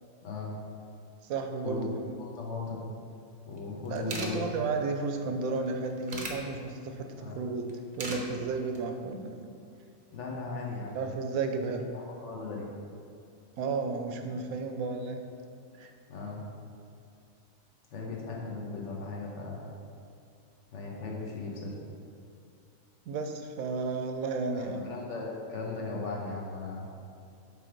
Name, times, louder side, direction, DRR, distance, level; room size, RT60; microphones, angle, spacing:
voice 1, 1.2-2.1 3.9-7.7 8.0-9.5 10.9-11.9 13.6-15.2 15.7-15.9 23.1-24.8, right 4 dB, 90° right, 5 dB, 1.1 m, -33 dB
voice 2, 2.2-2.9 3.5-4.4 4.8-4.9 7.2-7.4 10.1-11.0 11.9-12.7 16.1-16.4 17.9-19.6 20.7-21.7 24.5-26.9, left 3 dB, 60° left, -3 dB, 1.3 m, -37 dB
sound 1, 3.6-3.7 3.9-4.3 5.5-6.4 7.7-8.2 8.6-8.8, right 3 dB, 40° right, 0.6 m, -37 dB
7.1 x 3.5 x 4.5 m, 2.5 s
omnidirectional pair, 1.4 m